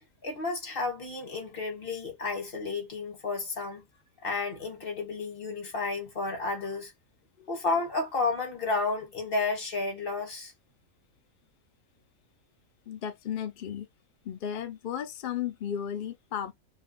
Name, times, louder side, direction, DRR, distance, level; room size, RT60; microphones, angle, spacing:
voice 1, 0.2-3.8 4.2-6.9 7.5-10.5, left 3 dB, 40° left, 1.4 m, -32 dB
voice 2, 12.9-13.9 14.2-16.5, left 9 dB, 85° left, 0.4 m, -34 dB
2.7 x 2.2 x 3.8 m
omnidirectional pair, 1.5 m